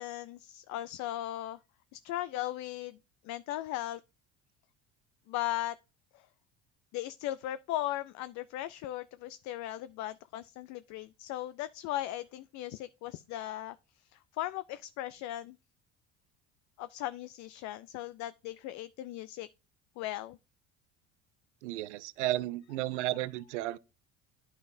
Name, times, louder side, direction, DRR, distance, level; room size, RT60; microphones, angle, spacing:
voice 1, 0.0-1.6 1.9-3.0 3.2-4.0 5.3-5.7 6.1-6.2 6.9-13.8 14.1-15.6 16.8-19.5 20.0-20.4, left 14 dB, 55° left, 0.4 m, -37 dB
voice 2, 21.6-23.8, right 15 dB, 85° right, 0.5 m, -33 dB
9.4 x 5.6 x 2.6 m
hypercardioid pair, 80°, 34 cm